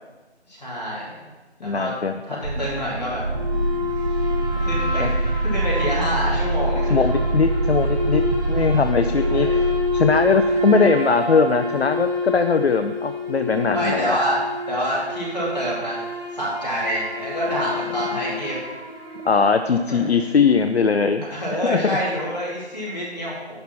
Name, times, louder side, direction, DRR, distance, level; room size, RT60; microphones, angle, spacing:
voice 1, 0.5-1.3 1.6-2.0 2.2-3.3 4.6-6.9 9.1-9.6 13.7-14.4 14.7-16.0 16.3-18.6 19.9-20.0 21.3-23.6, equal, 40° left, -8 dB, 3.0 m, -27 dB
voice 2, 1.6-2.1 5.0-5.1 6.9-8.2 8.5-9.7 9.9-14.2 19.3-21.2 21.6-22.0, left 5 dB, 70° left, 8 dB, 0.5 m, -20 dB
sound 1, 2.4-10.6, right 2 dB, 60° right, 0.9 m, -25 dB
sound 2, 3.3-19.9, left 2 dB, 45° right, 2.7 m, -28 dB
11.0 x 4.2 x 5.8 m, 1.2 s
figure-of-eight pair, 180°, 34 cm